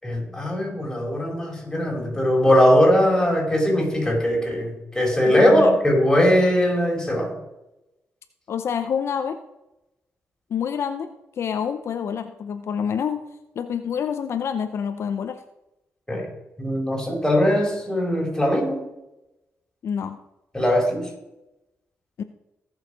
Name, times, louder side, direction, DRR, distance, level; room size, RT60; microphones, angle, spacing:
voice 1, 0.0-7.3 16.1-16.3 16.6-18.8 20.5-21.1, equal, 10° left, -1 dB, 4.7 m, -20 dB
voice 2, 5.4-5.7 8.5-9.4 10.5-11.1 11.4-13.2 13.6-15.4 19.8-20.2 22.2-22.3, left 7 dB, 65° left, 8 dB, 0.7 m, -27 dB
16.5 x 6.5 x 5.1 m, 0.94 s
cardioid pair, 100°, 5 cm